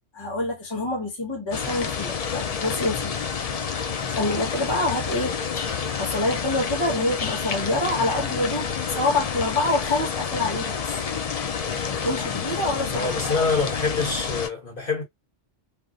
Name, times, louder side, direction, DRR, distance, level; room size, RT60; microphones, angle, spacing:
voice 1, 0.1-3.1 3.4-10.8 11.9-13.1, left 2 dB, 25° left, 1.1 m, -27 dB
sound 1, 1.5-14.5, left 6 dB, 70° left, 0.3 m, -29 dB
voice 2, 12.9-15.0, left 4 dB, 45° left, 1.7 m, -25 dB
3.6 x 2.4 x 2.4 m
omnidirectional pair, 1.2 m